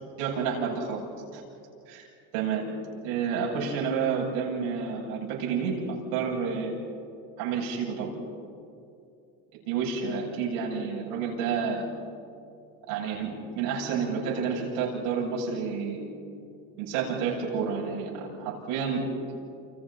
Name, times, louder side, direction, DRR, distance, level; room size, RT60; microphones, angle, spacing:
voice 1, 0.2-1.0 1.3-1.4 1.9-2.0 2.3-2.7 3.0-5.8 6.1-6.7 7.4-8.1 9.7-11.8 12.9-16.0 16.8-19.0, right 6 dB, 90° right, -4 dB, 7.7 m, -29 dB
30.0 x 29.0 x 4.3 m, 2.5 s
cardioid pair, 180°, 37 cm